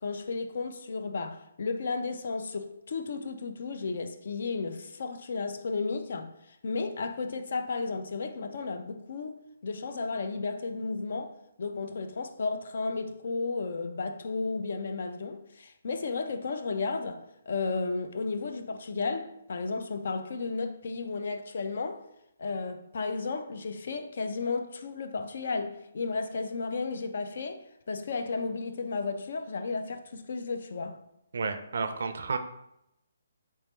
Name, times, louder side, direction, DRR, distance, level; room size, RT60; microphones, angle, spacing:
voice 1, 0.0-6.4 6.6-22.0 22.4-31.0, left 4 dB, 60° left, 0.4 m, -33 dB
voice 2, 31.3-32.4, right 4 dB, 65° right, 0.3 m, -31 dB
3.3 x 3.2 x 3.0 m
figure-of-eight pair, 145°, 0 cm